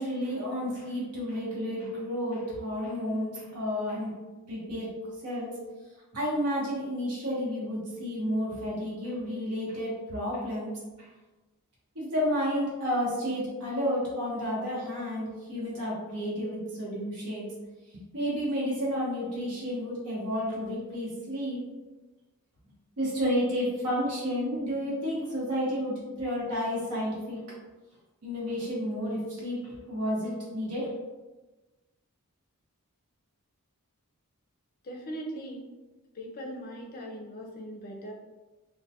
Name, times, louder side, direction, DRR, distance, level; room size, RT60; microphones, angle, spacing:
voice 1, 0.0-4.1 4.5-4.9 5.2-5.5 6.1-10.7 11.0-11.1 11.9-17.5 17.9-21.6 23.0-27.4 28.2-30.9, equal, 90° right, -5 dB, 0.9 m, -31 dB
voice 2, 34.8-35.6 36.1-38.1, right 1 dB, 40° left, 1 dB, 0.4 m, -39 dB
2.2 x 2.2 x 2.7 m, 1.2 s
head